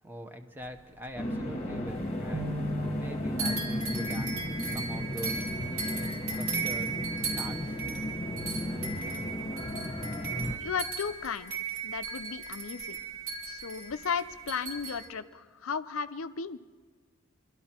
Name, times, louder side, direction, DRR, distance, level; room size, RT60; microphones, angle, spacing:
voice 1, 0.0-6.9 7.3-7.8, equal, 10° right, 6 dB, 0.8 m, -43 dB
sound 1, 0.6-2.1 2.4-3.1 3.4-15.1, right 5 dB, 85° right, 2.4 m, -37 dB
sound 2, 1.2-10.6, left 1 dB, 30° left, 1.1 m, -35 dB
sound 3, 2.3-8.6, equal, 25° right, 1.0 m, -41 dB
voice 2, 10.6-11.5 11.8-13.0 13.4-16.6, left 6 dB, 75° left, 12 dB, 0.6 m, -35 dB
24.0 x 12.5 x 4.4 m, 1.5 s
head